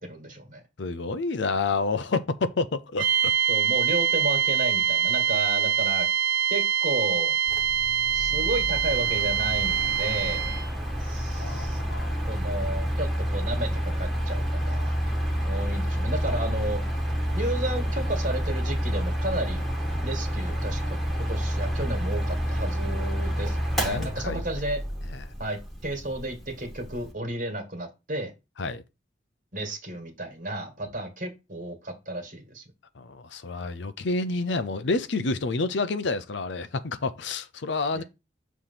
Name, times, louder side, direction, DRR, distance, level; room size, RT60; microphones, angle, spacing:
voice 1, 0.0-0.6 3.5-6.1 6.5-7.4 8.1-10.6 11.0-11.8 12.3-14.9 15.4-16.8 17.3-19.7 20.0-23.6 23.8-24.8 25.4-28.3 29.5-32.6 37.9-38.0, right 1 dB, 45° right, 1.7 m, -32 dB
voice 2, 0.8-3.3 11.4-12.3 23.7-24.4 25.1-25.2 28.6-28.8 33.0-38.0, left 3 dB, 70° left, 0.6 m, -29 dB
sound 1, 3.0-10.7, right 9 dB, 80° right, 1.0 m, -24 dB
Mechanical fan, 7.5-27.1, equal, ahead, 1.4 m, -29 dB
6.8 x 3.1 x 5.7 m
head